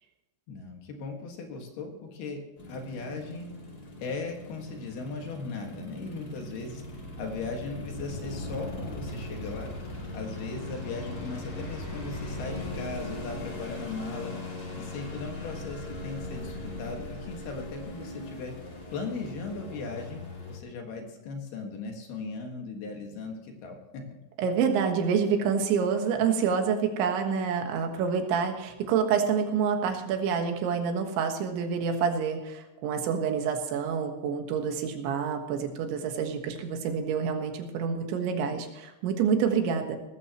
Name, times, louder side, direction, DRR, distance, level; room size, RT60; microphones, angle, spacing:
voice 1, 0.5-2.4 2.7-3.5 4.0-9.7 10.1-14.4 14.8-18.5 18.9-20.2 20.5-24.0, left 4 dB, 65° left, 2 dB, 3.6 m, -38 dB
sound 1, 2.6-20.6, left 2 dB, 30° left, 2.3 m, -41 dB
sound 2, 6.7-18.0, equal, 90° left, 6.7 m, -42 dB
voice 2, 24.4-40.0, right 6 dB, 85° right, 4 dB, 3.9 m, -27 dB
18.5 x 14.5 x 3.0 m, 1.0 s
omnidirectional pair, 5.1 m